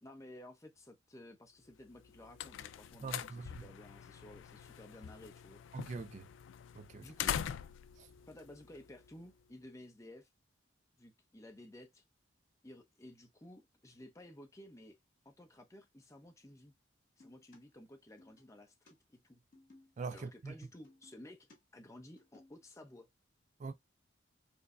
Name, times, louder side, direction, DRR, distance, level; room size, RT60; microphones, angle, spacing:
voice 1, 0.0-5.6 6.9-7.4 8.3-10.3 11.0-12.0 12.6-15.0 15.2-16.7 17.2-19.4 20.1-21.5 21.7-23.1, left 1 dB, 15° left, 0.7 m, -54 dB
sound 1, 1.9-9.3, left 9 dB, 80° left, 0.3 m, -43 dB
voice 2, 3.0-3.6 5.7-6.3 6.8-7.1 8.0-8.1 20.0-20.5 23.6-23.7, right 4 dB, 40° right, 0.3 m, -43 dB
sound 2, 17.2-17.6 18.2-18.5 18.9-19.0 19.5-20.2 20.8-21.6 22.0-22.6, left 2 dB, 50° left, 1.9 m, -62 dB
4.5 x 2.1 x 2.4 m
head